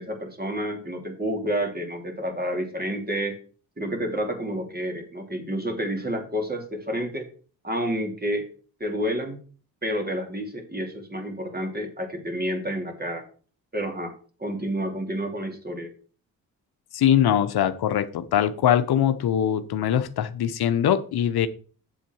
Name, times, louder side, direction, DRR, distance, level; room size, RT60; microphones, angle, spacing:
voice 1, 0.0-3.4 3.8-7.3 7.6-8.5 8.8-9.4 9.8-13.2 13.7-14.1 14.4-15.9, equal, 20° right, 4 dB, 3.1 m, -29 dB
voice 2, 16.9-21.5, left 10 dB, 65° left, 11 dB, 0.8 m, -22 dB
8.1 x 7.3 x 4.6 m, 0.40 s
supercardioid pair, 45°, 41 cm